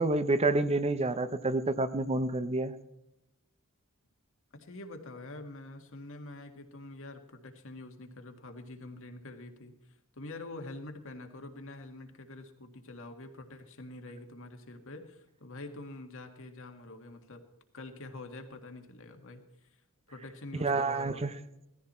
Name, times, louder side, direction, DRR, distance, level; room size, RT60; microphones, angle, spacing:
voice 1, 0.0-2.7 20.6-21.3, right 2 dB, 30° right, 12 dB, 0.7 m, -28 dB
voice 2, 4.5-17.4 17.7-19.8 20.1-21.3, left 2 dB, 65° left, 5 dB, 1.9 m, -46 dB
17.5 x 14.0 x 4.3 m, 0.86 s
head